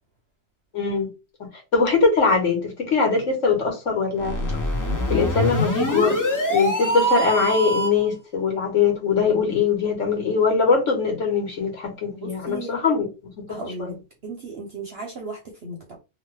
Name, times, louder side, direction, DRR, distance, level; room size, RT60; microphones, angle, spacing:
voice 1, 0.7-1.1 1.7-4.4 5.1-6.2 6.5-13.1 13.8-13.9, left 5 dB, 55° left, 1.4 m, -21 dB
sound 1, 4.2-8.1, equal, 25° left, 0.4 m, -24 dB
voice 2, 12.1-12.8 13.5-14.0 14.2-15.8, right 3 dB, 55° right, 0.8 m, -35 dB
3.0 x 2.2 x 3.1 m
omnidirectional pair, 1.6 m